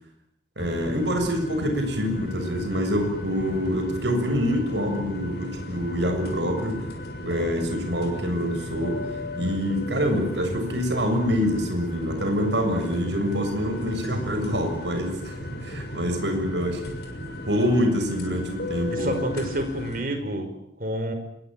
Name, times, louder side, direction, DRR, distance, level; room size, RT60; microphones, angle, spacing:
sound 1, 0.6-20.0, left 1 dB, 60° left, 6.5 m, -35 dB
voice 1, 0.6-6.8 7.2-9.0 9.4-16.8 17.5-19.2, equal, 75° right, 5 dB, 7.2 m, -26 dB
voice 2, 18.9-20.5 20.8-21.1, right 1 dB, 50° right, 7 dB, 5.4 m, -29 dB
26.5 x 22.0 x 9.2 m, 0.76 s
head